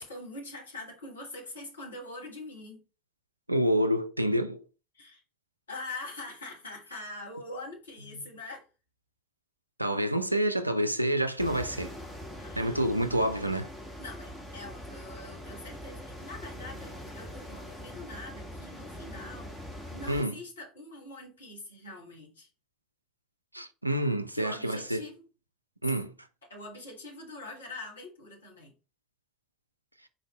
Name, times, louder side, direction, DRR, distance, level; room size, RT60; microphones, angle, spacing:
voice 1, 0.0-2.8 4.9-5.2 5.7-8.6 12.4-12.9 14.0-19.5 19.9-22.5 24.3-25.2 26.5-28.7, left 2 dB, 75° left, 1.4 m, -43 dB
voice 2, 3.5-4.6 9.8-11.9 12.6-13.7 20.1-20.3 23.5-25.1 25.8-26.1, right 1 dB, 90° right, 0.4 m, -28 dB
sound 1, 11.4-20.2, equal, 10° left, 1.3 m, -43 dB
4.4 x 2.6 x 4.1 m
figure-of-eight pair, 70°, 0 cm